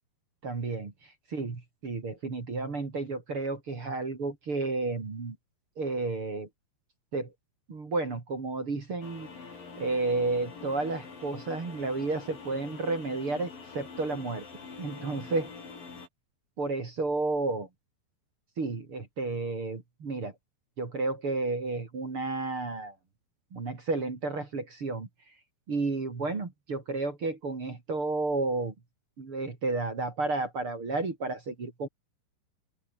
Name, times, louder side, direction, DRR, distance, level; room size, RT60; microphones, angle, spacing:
voice 1, 0.4-0.9 1.3-5.4 5.8-6.5 7.1-7.3 7.7-9.3 9.8-14.4 14.8-15.5 16.6-17.7 18.6-20.3 20.8-22.9 23.5-25.1 25.7-28.7 29.2-31.9, right 3 dB, 30° right, 3.8 m, -32 dB
sound 1, 9.0-16.1, left 5 dB, 50° left, 7.3 m, -45 dB
open air
omnidirectional pair, 5.1 m